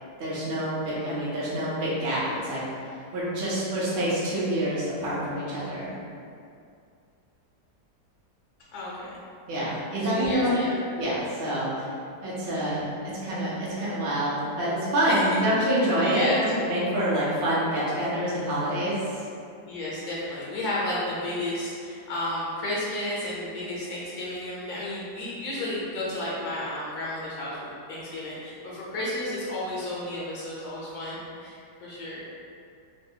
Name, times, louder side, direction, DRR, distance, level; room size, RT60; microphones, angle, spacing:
voice 1, 0.2-2.6 3.1-5.9 9.5-10.5 11.0-11.9 12.2-12.8 13.2-19.0, right 1 dB, 55° right, -8 dB, 0.6 m, -26 dB
voice 2, 8.7-9.1 10.1-10.8 12.5-12.9 15.1-15.2 16.0-16.4 19.7-32.2, left 1 dB, 70° left, -6 dB, 1.1 m, -32 dB
3.1 x 2.3 x 2.7 m, 2.4 s
omnidirectional pair, 1.9 m